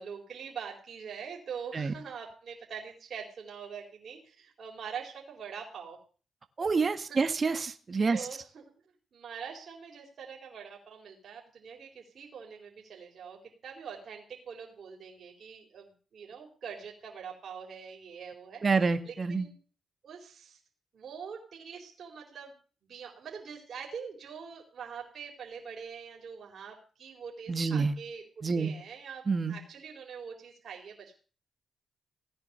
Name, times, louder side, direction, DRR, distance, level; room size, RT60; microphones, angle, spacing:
voice 1, 0.0-6.0 7.1-7.2 8.1-8.6 9.1-19.6 20.0-20.6 20.9-22.6 22.8-28.3 28.5-31.2, right 6 dB, 65° right, 0 dB, 4.5 m, -44 dB
voice 2, 6.6-8.2 18.6-19.5 27.5-27.9 28.4-28.7 29.3-29.6, right 4 dB, 50° right, 10 dB, 1.8 m, -27 dB
17.5 x 9.9 x 6.9 m, 0.40 s
supercardioid pair, 45°, 0 cm